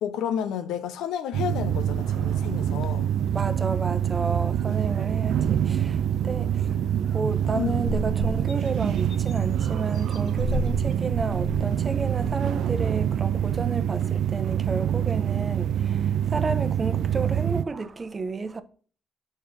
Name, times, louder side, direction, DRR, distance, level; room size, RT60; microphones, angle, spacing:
voice 1, 0.0-3.1 7.5-7.8, left 9 dB, 85° left, 0.7 m, -31 dB
sound 1, 1.3-17.6, right 10 dB, 75° right, 0.4 m, -25 dB
voice 2, 3.3-6.8 7.1-18.6, right 4 dB, 30° right, 0.8 m, -32 dB
sound 2, 5.4-6.1 6.6-6.7 6.9-7.2 7.5-12.5, left 3 dB, 65° left, 1.0 m, -36 dB
6.8 x 4.3 x 5.1 m
cardioid pair, 90°, 0 cm